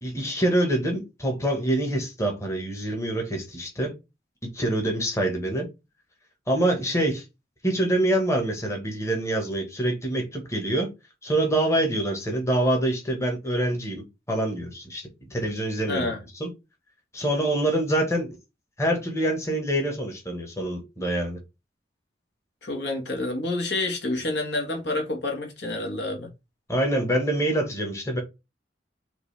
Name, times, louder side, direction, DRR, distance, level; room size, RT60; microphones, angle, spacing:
voice 1, 0.0-3.9 4.5-5.7 6.5-7.2 7.6-10.9 11.2-16.1 16.4-16.5 17.1-18.4 18.8-21.4 26.7-28.2, right 1 dB, 15° left, 1.3 m, -25 dB
voice 2, 15.9-16.2 22.6-26.3, left 2 dB, 65° left, 1.6 m, -28 dB
5.9 x 2.6 x 3.4 m
head